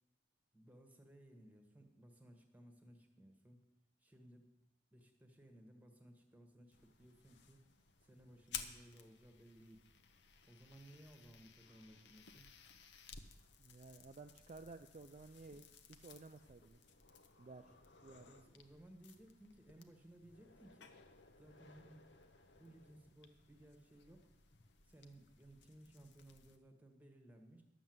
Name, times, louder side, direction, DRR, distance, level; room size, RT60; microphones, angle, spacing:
voice 1, 0.5-3.7 4.0-4.5 4.9-7.6 8.0-9.9 10.5-12.5 17.7-17.8 18.2-20.9 21.4-22.0 22.6-24.3 24.8-27.6, right 1 dB, 10° right, 4 dB, 1.4 m, -61 dB
sound 1, 6.7-26.6, left 7 dB, 60° left, 0.9 m, -57 dB
voice 2, 13.6-16.8 17.4-18.3, right 3 dB, 40° right, 6 dB, 0.4 m, -55 dB
11.0 x 7.4 x 7.8 m, 0.96 s
head